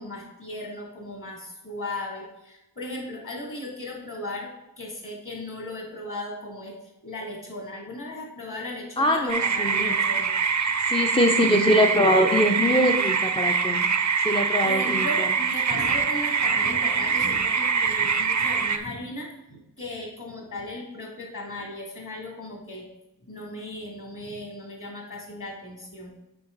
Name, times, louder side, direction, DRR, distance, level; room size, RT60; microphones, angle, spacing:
voice 1, 0.0-4.5 4.8-6.7 7.0-10.4 14.6-22.8 23.2-26.1, left 1 dB, 50° left, -1 dB, 2.8 m, -36 dB
voice 2, 9.0-9.9 10.6-13.9 14.2-15.3, left 1 dB, 15° left, 3 dB, 0.6 m, -23 dB
sound 1, 9.3-18.8, right 5 dB, 45° right, 0.6 m, -24 dB
6.9 x 5.1 x 4.0 m, 0.90 s
cardioid pair, 40°, 41 cm